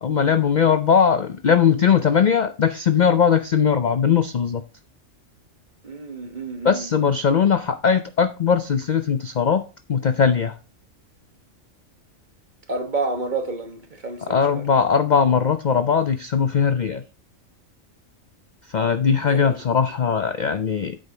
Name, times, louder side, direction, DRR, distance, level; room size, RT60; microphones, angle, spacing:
voice 1, 0.0-4.6 6.6-9.6 9.9-10.6 14.3-17.0 18.7-21.0, left 7 dB, 55° left, 0.5 m, -19 dB
voice 2, 5.8-6.9 12.7-14.6 19.2-19.6, right 3 dB, 35° right, 1.3 m, -29 dB
8.6 x 6.4 x 3.9 m
omnidirectional pair, 1.4 m